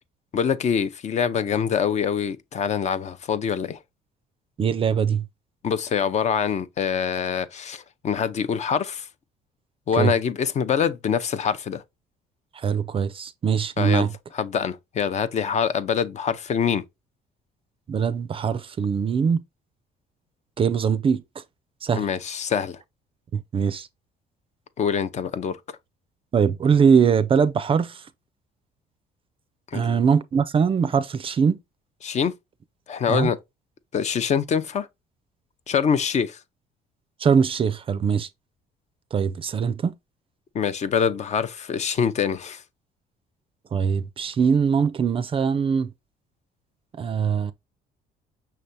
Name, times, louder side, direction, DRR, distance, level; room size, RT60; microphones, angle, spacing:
voice 1, 0.3-3.8 5.6-9.1 9.9-11.8 13.8-14.1 14.3-16.8 21.9-22.8 24.8-25.6 29.7-30.0 32.0-32.3 32.9-33.4 33.9-34.9 35.7-36.4 40.5-42.6, left 7 dB, 40° left, 0.6 m, -24 dB
voice 2, 4.6-5.2 9.9-10.1 12.6-14.1 17.9-19.4 20.6-21.2 21.8-22.0 23.3-23.9 26.3-28.0 29.7-31.6 33.1-33.3 37.2-38.3 39.1-39.9 43.7-45.9 47.0-47.5, right 6 dB, 30° right, 0.4 m, -22 dB
5.8 x 3.3 x 2.6 m
cardioid pair, 110°, 17 cm